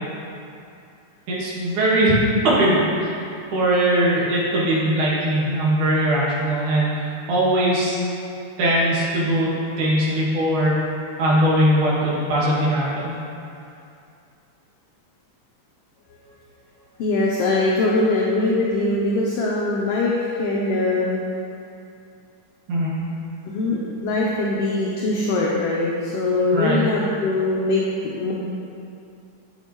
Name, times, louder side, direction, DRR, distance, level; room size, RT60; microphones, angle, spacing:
voice 1, 1.3-2.2 2.4-3.1 3.5-8.0 8.6-9.5 9.8-10.8 11.2-13.1 22.7-22.9 26.5-26.8, right 1 dB, 80° right, -6 dB, 3.1 m, -20 dB
voice 2, 17.0-21.3 23.5-28.3, left 2 dB, 75° left, -4 dB, 1.5 m, -22 dB
11.0 x 6.5 x 3.0 m, 2.5 s
omnidirectional pair, 3.5 m